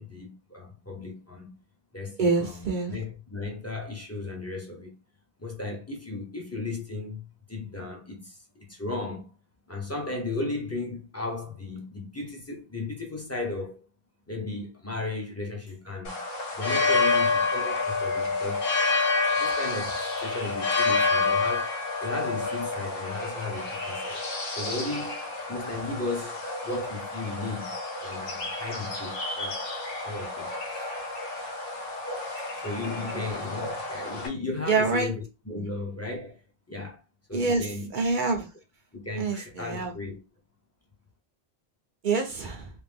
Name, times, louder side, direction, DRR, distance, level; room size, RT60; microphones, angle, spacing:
voice 1, 0.0-1.6 1.9-5.0 5.4-9.3 9.7-13.8 14.3-16.2 16.6-18.7 19.3-24.3 24.5-27.7 28.0-29.6 30.0-30.9 32.4-36.4 36.7-37.0 37.3-37.9 38.9-40.2, left 3 dB, 15° left, 0.8 m, -35 dB
voice 2, 2.2-2.9 33.0-33.2 34.7-35.1 35.5-35.7 37.3-38.5 39.2-39.9 42.0-42.7, right 4 dB, 55° right, 0.8 m, -27 dB
sound 1, 16.0-34.3, left 3 dB, 65° left, 1.1 m, -29 dB
3.4 x 2.4 x 3.4 m
omnidirectional pair, 1.1 m